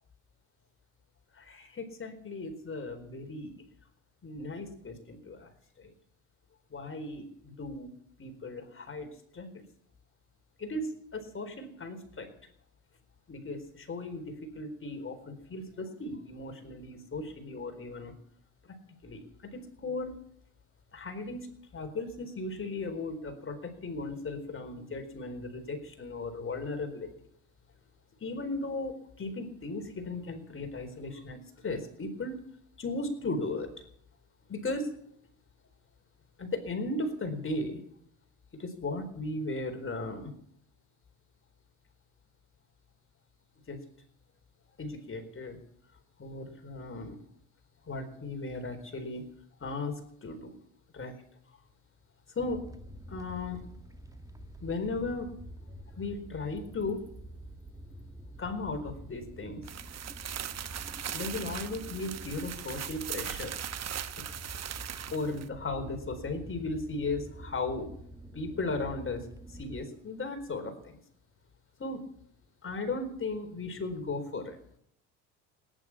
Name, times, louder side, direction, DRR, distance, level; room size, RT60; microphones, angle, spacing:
voice 1, 1.4-3.5 4.2-5.5 5.8-5.9 6.7-7.9 8.2-9.1 9.3-9.6 10.6-12.3 13.3-18.1 19.0-20.1 20.9-21.5 21.7-27.1 28.2-32.3 32.8-33.7 34.5-34.9 36.4-37.8 38.6-40.3 43.7-43.8 44.8-45.6 46.2-47.2 47.9-49.2 49.6-50.6 50.9-51.1 52.3-52.6 53.1-53.6 54.6-55.3 55.9-57.0 58.4-59.6 61.1-63.6 65.1-68.0 68.3-69.3 69.6-71.0 71.8-72.0 72.6-74.6, left 2 dB, 25° left, 6 dB, 4.3 m, -36 dB
sound 1, 52.4-69.8, right 1 dB, 10° right, 1.9 m, -47 dB
sound 2, 59.6-65.5, right 9 dB, 35° right, 1.1 m, -39 dB
18.5 x 10.5 x 7.4 m, 0.68 s
hypercardioid pair, 65°, 45 cm